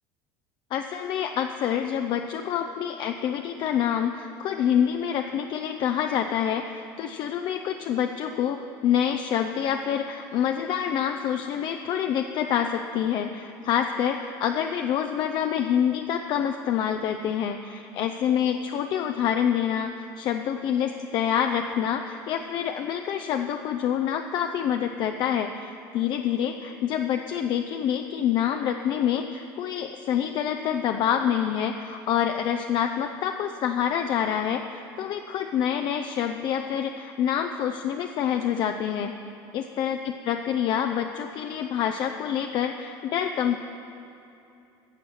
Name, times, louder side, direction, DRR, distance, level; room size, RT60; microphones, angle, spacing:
voice 1, 0.7-39.1 39.5-43.6, left 9 dB, 50° left, 5 dB, 0.5 m, -27 dB
15.0 x 7.3 x 6.3 m, 2.8 s
cardioid pair, 135°, 10 cm